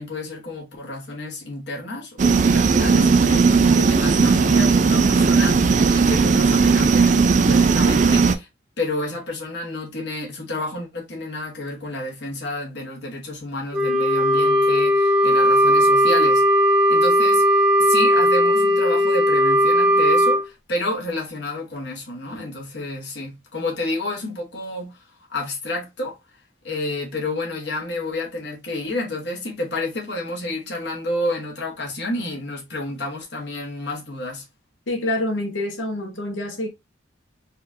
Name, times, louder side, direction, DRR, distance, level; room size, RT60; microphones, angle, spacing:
voice 1, 0.0-8.5 8.8-16.5 16.9-25.0 25.3-26.2 26.6-34.5, left 2 dB, 60° left, 1.2 m, -30 dB
sound 1, 2.2-8.3, right 4 dB, 40° right, 0.4 m, -17 dB
Wind instrument woodwind instrument, 13.7-20.4, equal, ahead, 0.8 m, -17 dB
voice 2, 34.9-36.7, left 1 dB, 85° left, 1.0 m, -26 dB
4.2 x 2.4 x 2.6 m
head